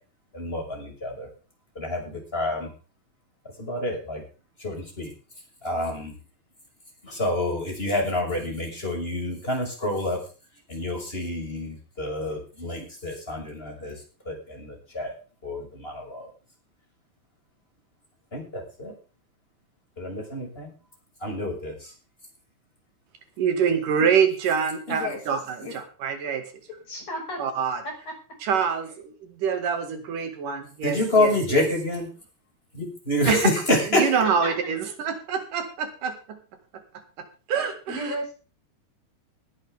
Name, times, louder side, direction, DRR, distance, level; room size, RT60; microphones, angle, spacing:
voice 1, 0.3-1.3 1.7-2.7 3.6-4.2 4.6-5.1 5.6-6.1 7.0-10.2 10.7-14.0 14.3-15.1 15.4-16.3 18.3-18.9 20.0-20.7 21.2-21.9 30.8-32.1 32.7-34.1, left 1 dB, 15° left, 1 dB, 6.3 m, -27 dB
voice 2, 23.4-26.4 27.4-27.8 28.4-31.7 33.3-33.5 33.9-36.4 37.5-38.2, right 7 dB, 80° right, 7 dB, 3.6 m, -26 dB
voice 3, 24.9-25.2 25.6-25.8 26.9-27.4 27.8-28.2 34.2-34.5 37.9-38.3, left 1 dB, 55° left, 1 dB, 7.0 m, -33 dB
19.5 x 10.0 x 3.6 m, 0.35 s
omnidirectional pair, 3.7 m